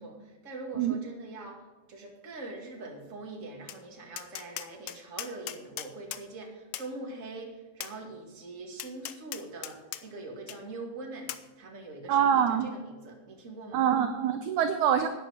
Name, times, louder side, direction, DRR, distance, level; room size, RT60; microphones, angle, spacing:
voice 1, 0.0-13.9, right 2 dB, 25° right, 0 dB, 2.1 m, -43 dB
Tap, 3.7-3.8 4.2-6.2 6.7-6.9 7.8-7.9 8.8-10.0 10.5-10.6 11.3-11.4, left 13 dB, 80° left, 2.0 m, -39 dB
voice 2, 12.1-12.7 13.7-15.1, right 9 dB, 75° right, 8 dB, 1.9 m, -25 dB
13.0 x 9.8 x 5.2 m, 1.2 s
omnidirectional pair, 4.0 m